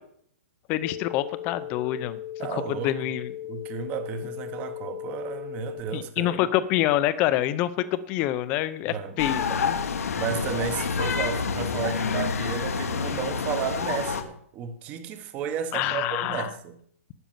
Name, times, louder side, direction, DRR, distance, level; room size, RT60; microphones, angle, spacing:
voice 1, 0.7-2.2 2.5-3.3 5.9-9.8 15.7-16.5, left 13 dB, 20° left, 0.5 m, -26 dB
sound 1, 0.8-5.8, left 12 dB, 45° left, 1.0 m, -37 dB
voice 2, 2.4-3.0 3.5-6.4 8.9-9.2 9.5-9.7 10.1-16.8, right 8 dB, 20° right, 0.9 m, -33 dB
sound 2, 9.2-14.2, left 5 dB, 90° left, 1.4 m, -28 dB
12.5 x 5.4 x 9.0 m
hypercardioid pair, 170°, 8 cm